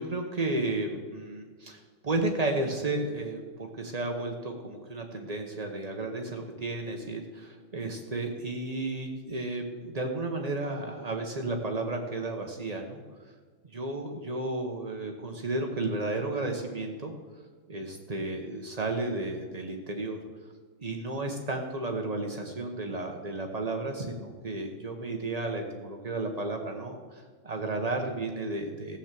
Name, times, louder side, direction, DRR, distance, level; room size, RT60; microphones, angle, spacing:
voice 1, 0.0-13.0 13.7-17.1 17.7-20.2 20.8-29.0, right 2 dB, 55° right, 2 dB, 0.4 m, -33 dB
15.0 x 7.2 x 7.4 m, 1.5 s
omnidirectional pair, 2.3 m